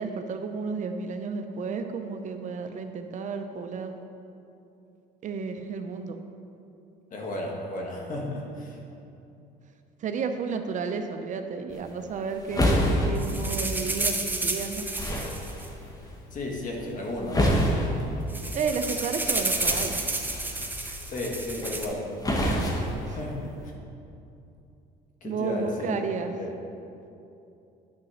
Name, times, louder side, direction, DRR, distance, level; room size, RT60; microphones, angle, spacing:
voice 1, 0.0-4.0 5.2-6.2 10.0-14.8 18.5-19.9 23.1-23.2 25.2-26.3, right 5 dB, 45° right, 7 dB, 0.6 m, -32 dB
voice 2, 7.1-8.8 16.3-17.6 21.0-22.1 23.0-23.7 25.2-25.9 26.4-26.5, left 1 dB, 50° left, 0 dB, 1.5 m, -34 dB
sound 1, 11.7-23.7, equal, 20° left, 1.2 m, -30 dB
sound 2, 13.1-16.4 17.2-17.3 17.5-17.7 18.0-21.8, right 2 dB, 10° right, 0.8 m, -31 dB
9.5 x 4.1 x 6.3 m, 2.8 s
cardioid pair, 110°, 17 cm